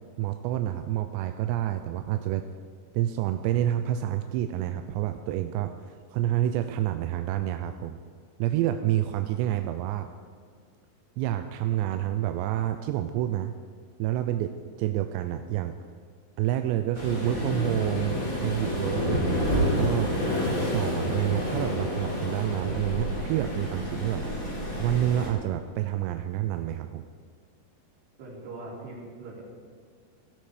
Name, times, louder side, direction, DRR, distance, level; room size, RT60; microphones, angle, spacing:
voice 1, 0.2-2.5 2.9-8.0 8.4-10.1 11.2-13.5 14.0-15.8 16.4-20.2 20.6-24.3 24.8-27.1, right 12 dB, 85° right, 8 dB, 2.7 m, -28 dB
Waves surf, 16.9-25.3, equal, 20° left, 3.2 m, -29 dB
voice 2, 28.2-29.4, right 2 dB, 65° right, -4 dB, 5.7 m, -41 dB
16.5 x 12.5 x 5.0 m, 2.1 s
omnidirectional pair, 5.2 m